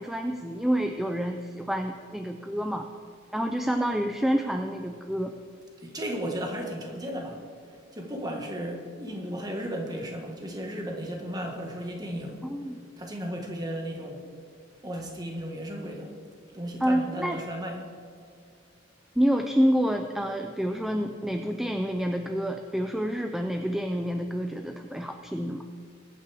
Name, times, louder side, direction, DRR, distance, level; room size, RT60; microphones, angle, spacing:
voice 1, 0.0-2.9 3.3-5.3 12.4-12.8 16.8-17.4 19.2-25.6, equal, ahead, 5 dB, 0.4 m, -28 dB
voice 2, 5.8-7.4 7.9-12.4 13.0-14.3 14.8-16.1 16.5-17.9, equal, 20° right, 1 dB, 1.6 m, -35 dB
22.0 x 9.1 x 3.5 m, 2.4 s
head